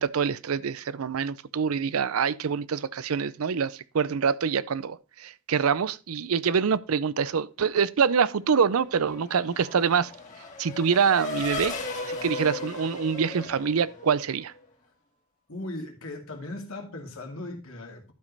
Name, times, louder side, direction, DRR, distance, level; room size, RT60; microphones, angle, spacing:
voice 1, 0.0-10.1 10.6-11.8 12.1-14.5, right 6 dB, 85° right, 0.5 m, -25 dB
Race car auto racing / Accelerating revving vroom, 8.5-14.6, left 2 dB, 35° left, 2.0 m, -36 dB
voice 2, 15.5-18.1, left 2 dB, 75° left, 2.3 m, -38 dB
11.5 x 5.1 x 4.0 m
head